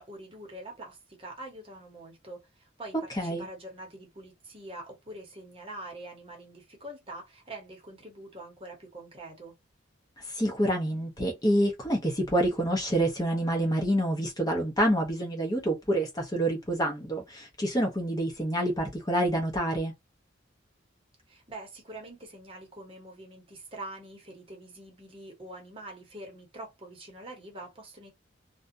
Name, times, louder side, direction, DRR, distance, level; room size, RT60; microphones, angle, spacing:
voice 1, 0.0-9.5 18.5-18.7 21.3-28.1, right 1 dB, 30° right, 1.0 m, -45 dB
voice 2, 3.1-3.5 10.2-19.9, right 1 dB, 20° left, 0.7 m, -27 dB
2.6 x 2.3 x 2.5 m
head